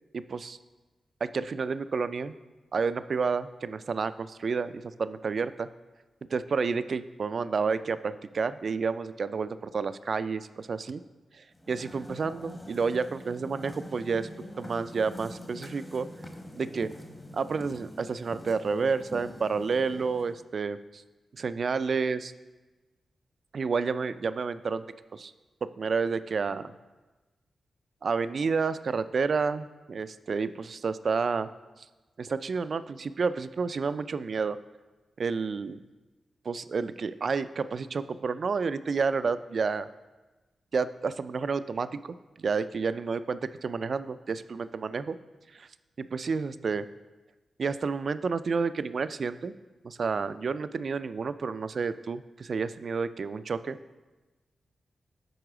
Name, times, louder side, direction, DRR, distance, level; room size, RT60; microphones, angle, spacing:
voice 1, 0.1-0.6 1.2-2.3 2.7-5.7 6.3-11.0 11.7-14.3 14.6-16.1 16.6-16.9 17.3-21.0 21.3-22.3 23.5-24.8 25.1-25.3 25.6-26.7 28.0-31.5 32.2-34.6 35.2-35.8 36.5-39.9 40.7-45.2 45.5-45.7 46.0-46.9 47.6-49.5 49.8-53.8, right 5 dB, 60° right, 13 dB, 0.3 m, -30 dB
sound 1, 11.5-20.4, left 1 dB, 25° left, 1.0 m, -44 dB
7.9 x 4.6 x 4.9 m, 1.2 s
cardioid pair, 55°, 0 cm